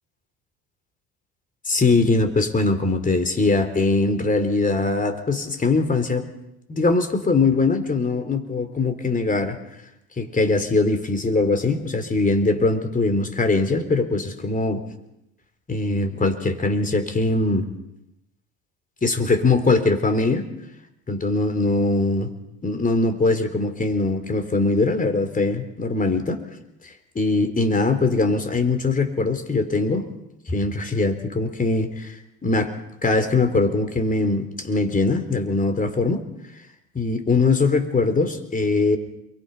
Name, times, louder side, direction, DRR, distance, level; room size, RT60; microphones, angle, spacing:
voice 1, 1.7-6.3 6.7-9.6 10.2-14.8 15.7-17.7 19.0-20.5 21.1-22.3 22.6-26.4 27.2-30.0 30.5-32.2 32.4-32.7 33.0-36.2 36.9-39.0, left 3 dB, 25° left, 8 dB, 3.9 m, -21 dB
28.5 x 23.5 x 5.7 m, 0.84 s
supercardioid pair, 90°, 32 cm